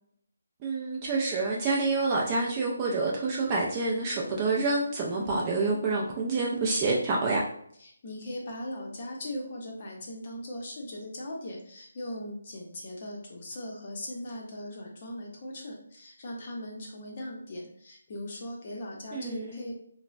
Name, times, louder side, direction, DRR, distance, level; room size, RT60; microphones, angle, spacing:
voice 1, 0.6-7.4 19.1-19.6, right 3 dB, 20° right, -3 dB, 0.3 m, -27 dB
voice 2, 7.8-19.8, left 1 dB, 35° left, -1 dB, 0.6 m, -39 dB
3.0 x 2.0 x 2.5 m, 0.67 s
hypercardioid pair, 170°, 0 cm